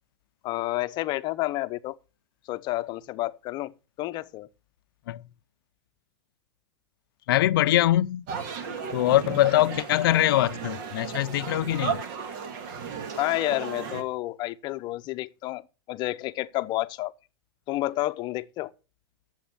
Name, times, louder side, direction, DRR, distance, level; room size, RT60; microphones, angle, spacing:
voice 1, 0.4-2.0 2.4-3.7 4.0-4.5 13.2-17.1 17.7-18.7, left 17 dB, 35° left, 0.7 m, -30 dB
voice 2, 7.3-8.3 8.9-12.0, left 14 dB, 70° left, 0.5 m, -23 dB
sound 1, 8.3-14.0, right 6 dB, 55° right, 1.8 m, -35 dB
9.2 x 7.4 x 7.2 m
supercardioid pair, 135°, 12 cm